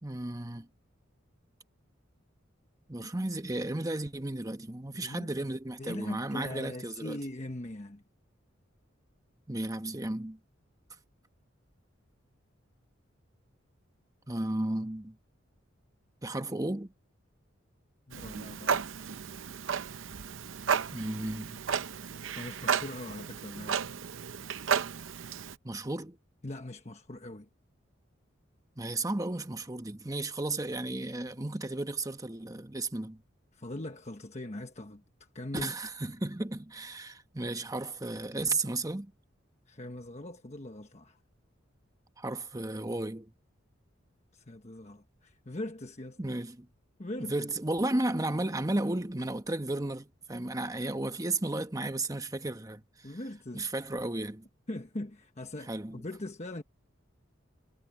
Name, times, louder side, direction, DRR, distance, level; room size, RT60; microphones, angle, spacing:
voice 1, 0.0-0.7 2.9-7.2 9.5-10.4 14.3-15.2 16.2-16.9 20.9-21.6 25.6-26.2 28.8-33.2 35.5-39.1 42.2-43.3 46.2-46.7 47.2-53.1 53.5-54.4 55.7-56.0, right 2 dB, 20° right, 1.2 m, -34 dB
voice 2, 4.9-5.3 5.8-8.0 18.1-18.8 22.3-23.9 26.4-27.5 33.5-35.7 39.7-41.2 44.3-46.2 47.0-47.5 53.0-53.7 54.7-56.6, left 1 dB, 35° left, 1.2 m, -41 dB
Clock, 18.1-25.6, right 7 dB, 80° right, 0.7 m, -33 dB
head